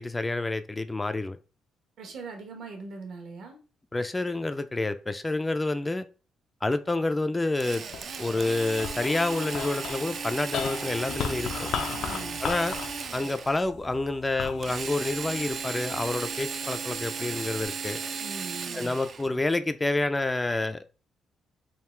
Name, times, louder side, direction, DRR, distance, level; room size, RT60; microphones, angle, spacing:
voice 1, 0.0-1.4 3.9-6.1 6.6-7.8 8.2-11.7 12.4-12.8 13.1-18.0 18.7-20.8, left 2 dB, 20° left, 0.3 m, -28 dB
voice 2, 2.0-3.6 11.9-12.4 18.2-19.0, right 3 dB, 70° right, 1.2 m, -41 dB
Drill, 7.6-13.7 14.6-19.3, right 6 dB, 50° right, 0.4 m, -35 dB
sound 1, 7.9-16.3 16.9-17.7, left 7 dB, 75° left, 0.5 m, -37 dB
3.6 x 2.4 x 4.3 m
cardioid pair, 90°, 0 cm